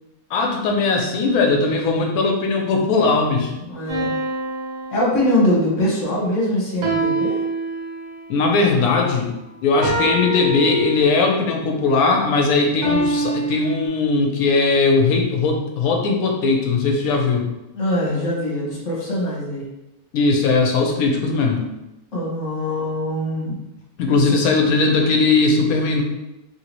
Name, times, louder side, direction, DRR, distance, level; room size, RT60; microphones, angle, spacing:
voice 1, 0.3-3.5 8.3-9.3 9.6-17.5 20.1-21.7 24.0-26.0, left 3 dB, 80° left, 2 dB, 1.0 m, -19 dB
voice 2, 3.6-4.1 4.9-7.4 17.7-19.7 22.1-23.6 24.2-24.4, left 1 dB, 60° left, -5 dB, 1.3 m, -22 dB
sound 1, 3.9-5.7 6.8-8.3 9.8-11.4 12.8-13.9, right 2 dB, 90° right, 1.4 m, -25 dB
3.0 x 2.7 x 2.9 m, 0.95 s
omnidirectional pair, 1.5 m